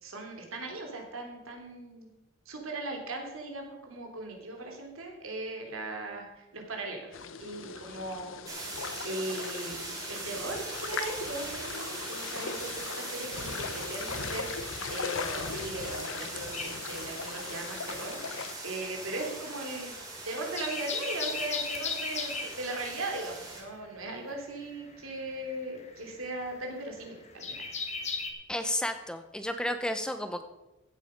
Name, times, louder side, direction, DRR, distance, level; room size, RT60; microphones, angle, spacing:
voice 1, 0.0-2.1 2.4-7.1 7.4-8.3 8.6-8.8 9.0-19.9 20.3-27.6, right 2 dB, 85° right, 2 dB, 3.1 m, -38 dB
sound 1, 7.1-18.5, left 5 dB, 70° left, 0.9 m, -39 dB
sound 2, 8.5-23.6, right 2 dB, 20° right, 2.7 m, -41 dB
sound 3, 16.5-17.9 18.2-28.3, left 4 dB, 35° left, 1.6 m, -37 dB
voice 2, 28.5-30.5, left 1 dB, 5° left, 8 dB, 0.7 m, -32 dB
15.5 x 8.2 x 5.2 m, 0.99 s
head